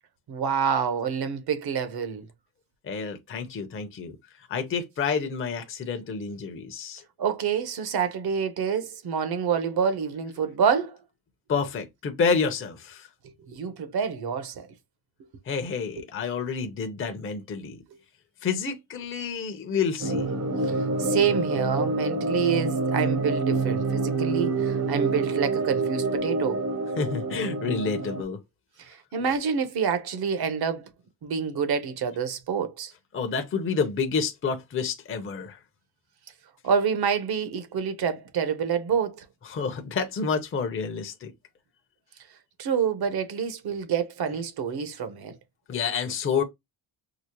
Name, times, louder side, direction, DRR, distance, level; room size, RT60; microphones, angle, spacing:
voice 1, 0.3-2.3 7.2-11.0 13.4-14.7 20.6-26.6 28.8-30.9 31.2-32.9 36.6-39.2 42.6-45.4, right 7 dB, 55° right, 1.0 m, -27 dB
voice 2, 2.8-4.2 4.5-7.0 11.5-13.1 15.5-17.8 18.4-20.3 27.0-28.4 33.1-35.6 39.4-41.3 45.7-46.4, left 5 dB, 30° left, 0.7 m, -29 dB
sound 1, 20.0-28.2, right 3 dB, 35° right, 0.7 m, -27 dB
4.8 x 2.0 x 2.9 m
cardioid pair, 140°, 45 cm